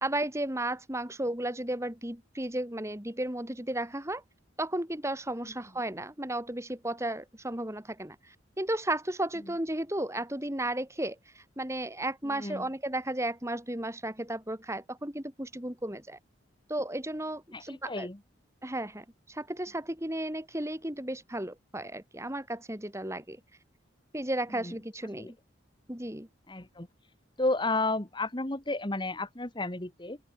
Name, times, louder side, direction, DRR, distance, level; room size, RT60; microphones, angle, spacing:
voice 1, 0.0-4.2 4.6-16.2 16.7-18.1 18.6-23.4 24.1-25.3 25.9-26.3, right 1 dB, 15° right, 2.8 m, -34 dB
voice 2, 12.2-12.7 17.5-18.2 24.5-24.7 25.2-25.3 26.5-26.9 27.4-30.2, left 2 dB, 25° left, 1.6 m, -32 dB
open air
head